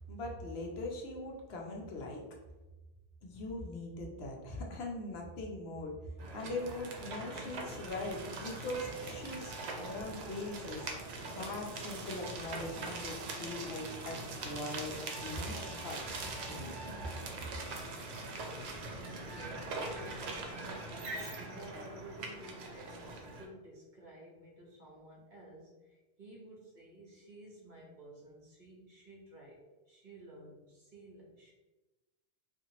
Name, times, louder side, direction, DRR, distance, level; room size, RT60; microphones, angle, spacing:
voice 1, 0.1-2.2 3.2-5.9 6.3-10.9 11.4-15.0 15.2-16.0 16.4-16.7, left 2 dB, 75° left, 0 dB, 0.9 m, -41 dB
sound 1, 6.2-23.5, right 2 dB, 85° right, 0.8 m, -42 dB
voice 2, 18.9-31.5, right 1 dB, 50° right, -4 dB, 0.9 m, -53 dB
2.8 x 2.5 x 2.7 m, 1.1 s
omnidirectional pair, 1.1 m